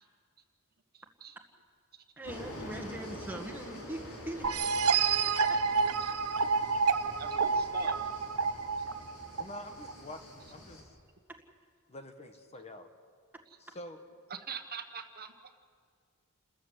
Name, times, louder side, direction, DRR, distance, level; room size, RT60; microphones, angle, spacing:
voice 1, 0.9-1.4 6.0-6.1 7.2-8.0 14.3-15.3, right 6 dB, 45° right, 6 dB, 1.3 m, -43 dB
sound 1, 2.2-10.8, equal, 80° left, 4.4 m, -46 dB
voice 2, 2.2-4.5, right 1 dB, 10° right, 3 dB, 1.8 m, -41 dB
sound 2, 4.4-9.9, right 5 dB, 90° right, 1.0 m, -29 dB
voice 3, 9.4-10.9 11.9-12.9 13.6-14.0, left 1 dB, 30° left, 7 dB, 1.3 m, -47 dB
29.0 x 14.0 x 8.3 m, 2.2 s
head